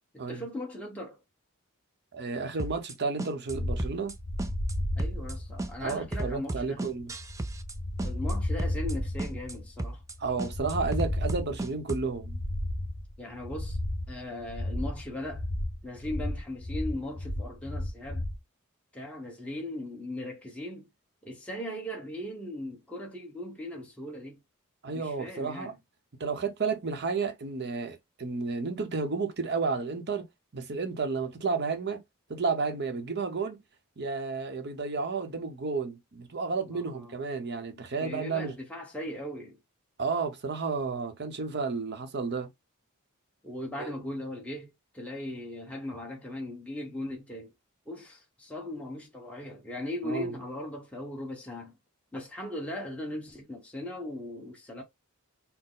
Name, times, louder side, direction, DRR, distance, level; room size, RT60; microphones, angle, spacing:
voice 1, 0.1-1.2 5.0-6.9 8.0-10.0 13.2-13.8 14.1-15.5 15.8-18.2 18.9-20.9 21.2-24.4 24.9-25.8 36.7-37.2 37.7-39.6 43.4-47.5 47.9-51.7 52.1-54.8, left 1 dB, 5° left, 1.0 m, -38 dB
voice 2, 2.1-4.2 5.8-7.1 10.2-12.4 24.8-25.7 26.2-30.3 30.5-32.0 32.3-33.6 34.0-38.5 40.0-42.5 43.8-43.9 50.0-50.3, right 4 dB, 50° right, 0.8 m, -32 dB
sound 1, 2.6-2.9 3.2-3.5 3.8-4.1 4.4-4.7 5.0-5.3 5.6-7.7 8.0-8.3 8.6-8.9 9.2-9.5 9.8-10.1 10.4-12.1, right 2 dB, 15° right, 0.4 m, -35 dB
sound 2, 3.5-18.4, left 1 dB, 55° left, 1.0 m, -34 dB
4.3 x 2.1 x 3.8 m
head